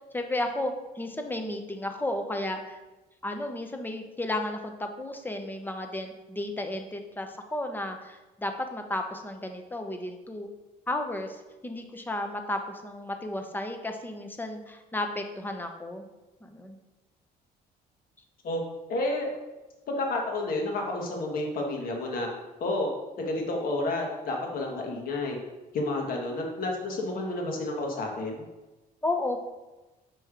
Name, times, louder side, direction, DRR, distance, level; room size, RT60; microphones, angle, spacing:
voice 1, 0.1-2.8 3.2-10.5 10.9-11.4 11.6-16.1 16.4-16.8 29.0-29.4, left 1 dB, 10° left, 5 dB, 0.7 m, -33 dB
voice 2, 18.9-19.3 19.9-22.3 22.6-22.9 23.2-25.4 25.7-28.4, left 2 dB, 60° left, 1 dB, 1.4 m, -30 dB
6.6 x 3.0 x 4.9 m, 1.1 s
cardioid pair, 110°, 17 cm